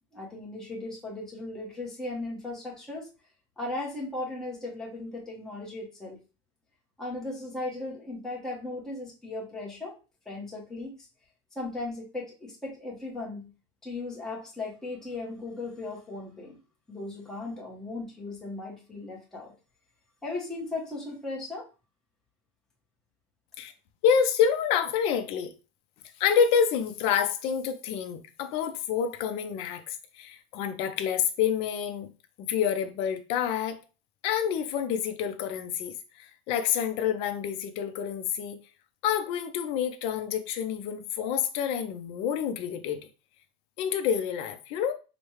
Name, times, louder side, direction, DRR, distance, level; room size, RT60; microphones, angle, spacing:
voice 1, 0.1-3.1 3.6-6.2 7.0-10.0 10.3-10.9 11.5-13.5 13.8-16.6 16.9-19.5 20.2-21.7, left 2 dB, 5° left, 0.8 m, -37 dB
voice 2, 24.0-25.5 26.2-32.1 32.4-33.8 34.2-38.6 39.0-43.0 43.8-44.9, left 8 dB, 40° left, 0.5 m, -28 dB
5.1 x 2.1 x 3.0 m
supercardioid pair, 170°, 15 cm